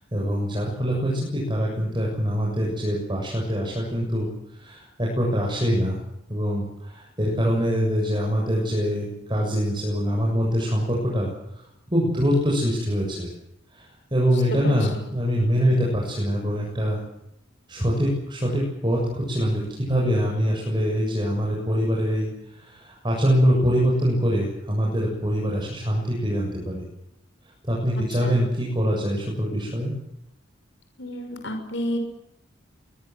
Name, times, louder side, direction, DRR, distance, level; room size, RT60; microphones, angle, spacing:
voice 1, 0.1-4.3 4.6-6.0 6.3-11.3 11.9-13.3 13.7-13.9 14.1-17.0 17.7-26.8 27.7-29.9, equal, 25° right, -2 dB, 7.6 m, -24 dB
voice 2, 31.0-32.0, left 1 dB, 65° left, 5 dB, 6.1 m, -30 dB
25.0 x 22.0 x 7.9 m, 0.83 s
head